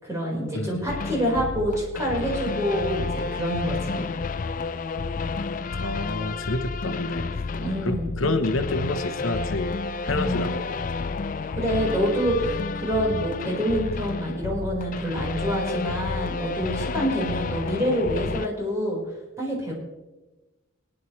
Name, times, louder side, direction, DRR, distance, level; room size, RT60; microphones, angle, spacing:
voice 1, 0.0-4.1 7.6-8.1 10.1-10.5 11.6-19.0 19.4-19.7, equal, 15° right, -5 dB, 4.5 m, -27 dB
sound 1, 0.9-18.5, left 4 dB, 40° left, 0.4 m, -30 dB
voice 2, 5.8-9.8 10.0-10.8, left 2 dB, 85° left, 7 dB, 1.0 m, -29 dB
22.0 x 10.0 x 3.2 m, 1.1 s
head